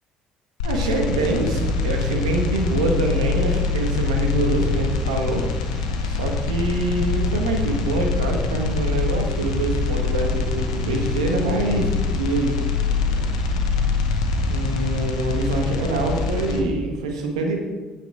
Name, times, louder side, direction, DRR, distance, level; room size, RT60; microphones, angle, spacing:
sound 1, 0.6-16.6, left 4 dB, 90° left, 0.8 m, -24 dB
voice 1, 0.6-5.5 6.0-12.6 13.1-13.3 14.5-17.6, right 2 dB, 90° right, 2 dB, 1.1 m, -25 dB
9.1 x 4.7 x 4.7 m, 1.3 s
hypercardioid pair, 60°, 3 cm